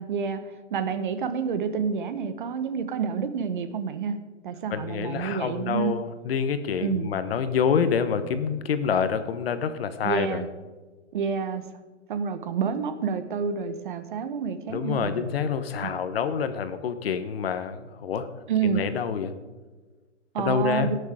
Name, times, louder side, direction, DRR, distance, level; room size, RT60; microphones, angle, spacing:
voice 1, 0.0-4.2 4.4-5.9 6.8-7.1 10.0-10.5 11.1-11.6 12.1-15.3 15.8-15.9 18.5-18.8 20.3-21.0, right 6 dB, 40° right, 11 dB, 0.9 m, -28 dB
voice 2, 4.7-10.4 14.7-18.3 18.6-19.3 20.4-20.9, left 7 dB, 50° left, 11 dB, 1.1 m, -27 dB
17.5 x 6.7 x 4.9 m, 1.3 s
hypercardioid pair, 170°, 37 cm